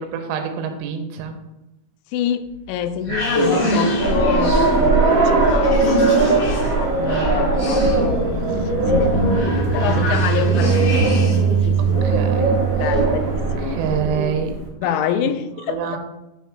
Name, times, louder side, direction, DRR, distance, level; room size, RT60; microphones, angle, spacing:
voice 1, 0.0-1.3 3.1-3.2 7.0-8.0 12.0-12.5 13.6-14.5 14.8-15.0 15.7-16.0, right 7 dB, 90° right, 6 dB, 3.0 m, -27 dB
voice 2, 2.1-9.2 9.7-11.2 11.6-12.1 12.8-13.8 14.8-16.0, left 9 dB, 85° left, 10 dB, 2.8 m, -27 dB
sound 1, 2.5-11.5, equal, 45° left, 1.4 m, -25 dB
sound 2, 4.0-14.6, right 2 dB, 75° right, 1.0 m, -20 dB
sound 3, 8.3-13.9, right 8 dB, 30° left, 0.7 m, -22 dB
9.0 x 3.4 x 4.7 m, 0.96 s
omnidirectional pair, 5.1 m